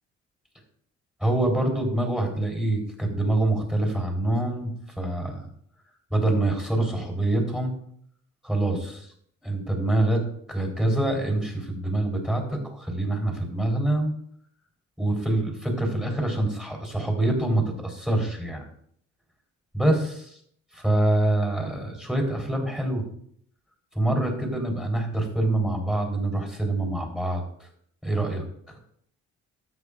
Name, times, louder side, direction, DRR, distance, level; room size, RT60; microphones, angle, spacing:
voice 1, 1.2-4.7 5.0-5.4 6.1-7.7 8.4-9.1 9.4-14.1 15.0-18.6 19.7-20.4 20.7-23.0 23.9-27.4 28.0-28.4, right 1 dB, 5° right, 1 dB, 3.8 m, -25 dB
13.5 x 8.5 x 2.5 m, 0.66 s
cardioid pair, 90°, 30 cm